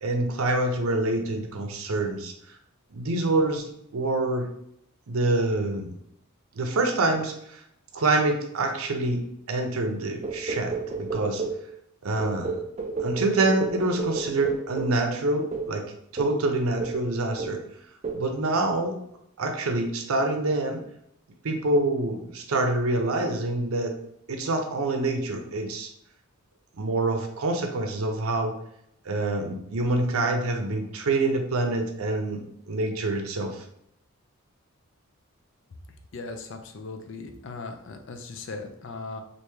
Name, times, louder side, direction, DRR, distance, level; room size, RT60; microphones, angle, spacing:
voice 1, 0.0-2.3 2.9-4.5 5.1-5.9 6.6-7.6 7.9-9.2 9.5-11.4 12.0-12.6 13.0-15.8 16.1-17.6 18.1-19.0 19.4-20.8 21.4-23.9 24.3-25.9 26.8-28.5 29.1-33.6, right 2 dB, 80° right, 4 dB, 0.6 m, -26 dB
sound 1, 10.2-11.7 12.2-15.0 15.5-15.7 16.2-16.4 16.8-17.1 17.4-17.7 18.0-18.3, right 4 dB, 30° right, 0.3 m, -31 dB
voice 2, 36.1-39.2, left 3 dB, 60° left, 5 dB, 0.4 m, -38 dB
3.4 x 2.6 x 3.1 m, 0.75 s
head